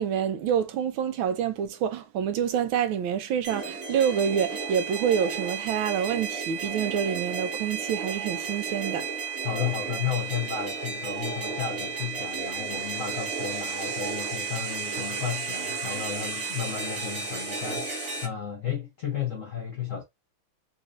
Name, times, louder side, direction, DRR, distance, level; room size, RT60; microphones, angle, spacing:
voice 1, 0.0-9.1, right 8 dB, 75° right, 1.4 m, -27 dB
sound 1, 3.4-18.3, right 5 dB, 40° right, 1.5 m, -33 dB
voice 2, 9.4-17.9 18.2-20.0, left 8 dB, 70° left, 0.7 m, -33 dB
4.1 x 2.6 x 2.6 m
omnidirectional pair, 2.3 m